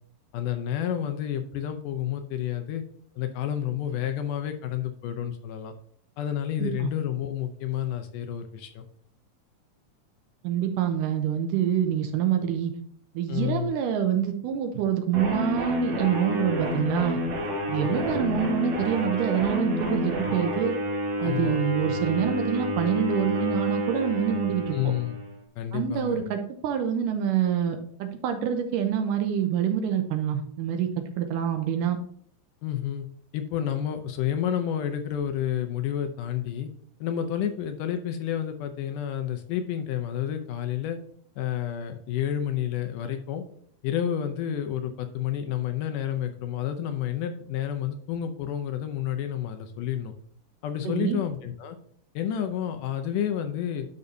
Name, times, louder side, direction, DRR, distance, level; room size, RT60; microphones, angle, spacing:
voice 1, 0.3-2.8 3.2-5.7 6.2-8.8 13.3-13.7 17.8-18.2 21.2-21.6 24.7-25.2 25.6-26.2 32.6-33.1 33.3-36.7 37.0-41.0 41.4-43.4 43.8-50.1 50.6-51.8 52.2-53.9, left 10 dB, 75° left, 7 dB, 2.0 m, -30 dB
voice 2, 6.6-6.9 10.4-12.7 13.1-17.2 17.7-20.8 21.2-24.8 25.7-30.9 31.2-32.0 50.8-51.2, right 9 dB, 75° right, 6 dB, 2.2 m, -26 dB
sound 1, 15.1-25.4, equal, 55° right, 3.9 m, -29 dB
12.0 x 5.5 x 2.7 m, 0.63 s
omnidirectional pair, 4.1 m